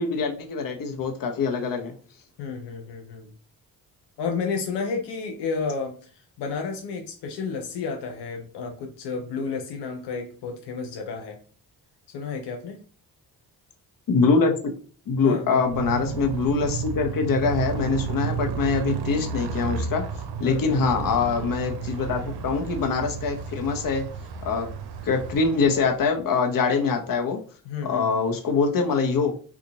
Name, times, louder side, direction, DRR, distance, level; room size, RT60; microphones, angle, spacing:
voice 1, 0.0-1.9 14.1-14.5 15.1-20.0 20.4-24.1 24.4-24.7 25.0-27.4 27.8-29.4, left 4 dB, 55° left, 4 dB, 0.8 m, -24 dB
voice 2, 2.4-3.3 4.2-11.4 12.1-12.8 15.2-15.6 20.4-20.8 27.7-28.2, left 5 dB, 85° left, 4 dB, 0.6 m, -31 dB
Motorcycle, 15.6-26.2, right 6 dB, 75° right, 0.6 m, -32 dB
2.8 x 2.4 x 3.9 m, 0.40 s
cardioid pair, 75°, 40 cm